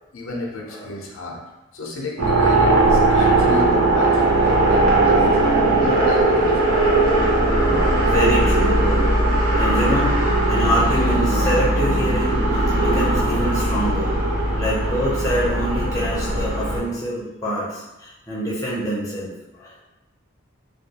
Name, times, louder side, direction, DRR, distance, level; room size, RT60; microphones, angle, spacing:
voice 1, 0.1-1.4 1.7-5.4 5.8-6.7 7.7-8.1, left 1 dB, 80° left, -1 dB, 0.5 m, -32 dB
sound 1, 2.2-16.8, right 2 dB, 85° right, 0.6 m, -18 dB
voice 2, 8.0-9.1 9.5-10.2 10.5-14.1 14.5-19.8, equal, 15° left, -6 dB, 0.5 m, -25 dB
2.2 x 2.2 x 2.7 m, 0.98 s
head